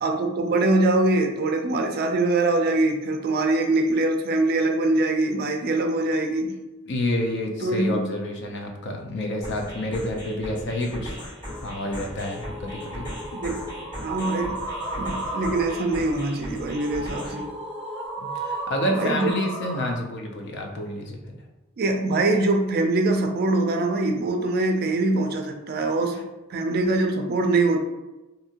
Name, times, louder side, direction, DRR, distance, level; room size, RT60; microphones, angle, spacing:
voice 1, 0.0-6.5 7.6-8.1 13.4-13.6 14.0-14.6 15.0-17.5 18.9-19.3 21.8-26.2 26.5-27.8, right 2 dB, 45° right, 4 dB, 0.4 m, -23 dB
voice 2, 6.9-11.2 11.6-13.0 18.4-21.2, left 1 dB, 55° left, 2 dB, 0.5 m, -29 dB
sound 1, 9.4-17.4, equal, 20° left, 1.4 m, -38 dB
sound 2, 11.5-19.9, right 1 dB, ahead, 0.7 m, -34 dB
2.6 x 2.5 x 2.8 m, 1.1 s
head